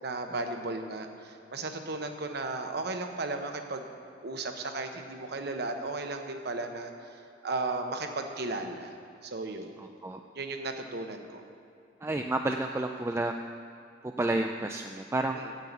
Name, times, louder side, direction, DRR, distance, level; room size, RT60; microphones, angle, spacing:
voice 1, 0.0-3.9 4.2-6.9 7.4-8.9 9.2-9.7 10.3-11.4 15.3-15.5, right 2 dB, 55° right, 5 dB, 1.0 m, -35 dB
voice 2, 9.8-10.2 12.0-13.3 14.0-15.4, right 2 dB, 15° right, 4 dB, 0.3 m, -30 dB
9.1 x 7.6 x 8.2 m, 2.6 s
head